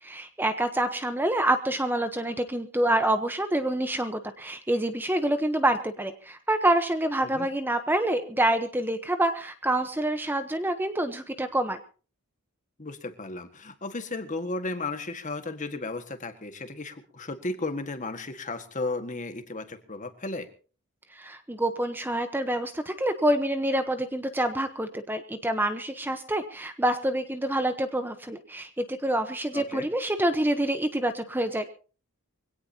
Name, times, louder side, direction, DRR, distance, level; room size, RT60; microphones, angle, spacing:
voice 1, 0.0-11.8 21.1-31.6, right 1 dB, 10° right, 8 dB, 1.0 m, -27 dB
voice 2, 12.8-20.5 29.5-29.9, left 2 dB, 35° left, 8 dB, 1.8 m, -34 dB
23.5 x 17.5 x 2.9 m, 0.38 s
head